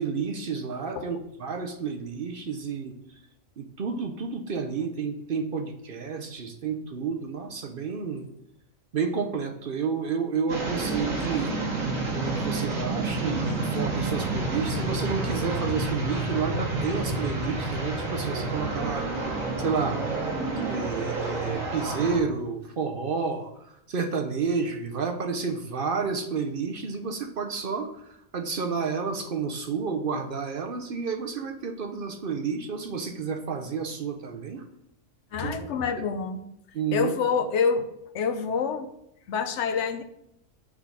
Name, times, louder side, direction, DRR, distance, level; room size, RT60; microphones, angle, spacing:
voice 1, 0.0-2.9 3.6-8.3 8.9-11.6 12.1-20.0 20.7-34.6 35.4-35.7 36.7-37.1, right 5 dB, 50° right, 5 dB, 0.7 m, -30 dB
sound 1, 10.5-22.2, right 2 dB, 90° right, 2.0 m, -29 dB
voice 2, 35.3-36.4 36.9-37.9 38.1-38.9 39.3-40.0, left 5 dB, 65° left, 8 dB, 0.9 m, -26 dB
6.5 x 3.7 x 6.3 m, 0.78 s
omnidirectional pair, 1.4 m